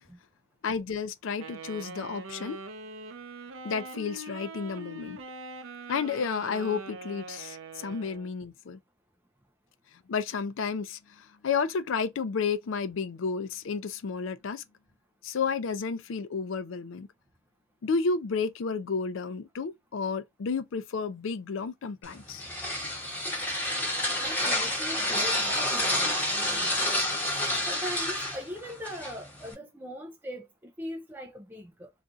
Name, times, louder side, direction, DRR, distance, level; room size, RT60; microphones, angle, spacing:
voice 1, 0.6-2.6 3.6-5.2 5.9-8.8 10.1-14.6 15.2-17.1 17.8-22.4, left 5 dB, 70° left, 0.4 m, -31 dB
Wind instrument woodwind instrument, 1.4-8.3, right 2 dB, 80° right, 0.6 m, -43 dB
sound 1, 22.0-29.5, left 1 dB, 10° left, 1.1 m, -29 dB
voice 2, 24.2-27.0 27.7-31.9, equal, 10° right, 0.4 m, -41 dB
2.6 x 2.4 x 3.7 m
head